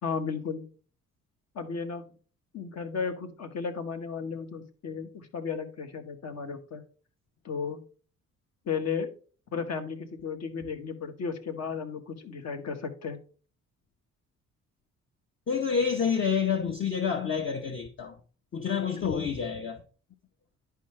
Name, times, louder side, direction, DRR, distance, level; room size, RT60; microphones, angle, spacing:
voice 1, 0.0-0.6 1.5-2.0 2.5-6.8 7.4-7.8 8.7-9.1 9.5-13.2 19.0-19.3, left 5 dB, 60° left, 1.3 m, -34 dB
voice 2, 15.5-18.2 18.5-19.8, left 6 dB, 40° left, 0.8 m, -28 dB
10.5 x 4.7 x 3.2 m
cardioid pair, 90°, 30 cm